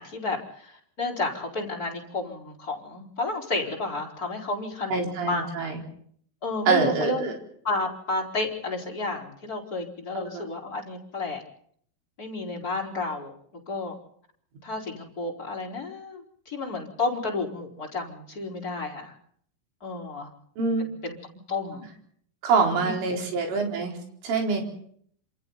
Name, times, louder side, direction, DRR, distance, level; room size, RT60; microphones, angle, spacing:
voice 1, 0.0-5.7 6.4-7.3 7.6-11.4 12.2-13.3 13.7-14.0 14.6-19.1 19.8-20.3 20.8-21.2 21.5-21.9 22.8-22.9 23.2-23.3, left 2 dB, 20° left, -1 dB, 4.4 m, -31 dB
voice 2, 4.9-5.8 6.7-7.3 10.3-10.4 20.6-20.9 22.4-23.9 24.2-24.6, right 4 dB, 70° right, 2 dB, 6.7 m, -25 dB
28.0 x 27.5 x 4.0 m, 0.62 s
omnidirectional pair, 5.9 m